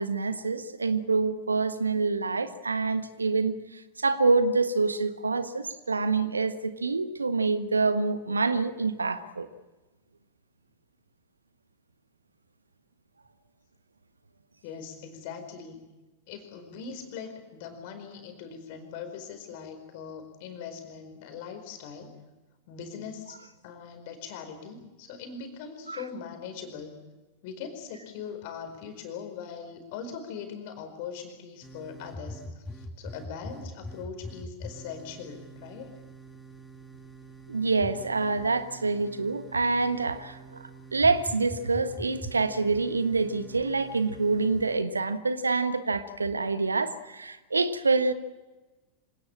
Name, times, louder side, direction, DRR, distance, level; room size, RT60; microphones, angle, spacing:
voice 1, 0.0-9.5 25.9-26.0 37.5-48.1, right 3 dB, 75° right, 1.4 m, -26 dB
voice 2, 14.6-15.9 16.3-22.1 22.7-27.0 27.4-35.9, left 6 dB, 50° left, 4.8 m, -41 dB
sound 1, 31.6-44.8, equal, 10° left, 2.0 m, -44 dB
26.0 x 18.5 x 8.9 m
figure-of-eight pair, 90°, 0 cm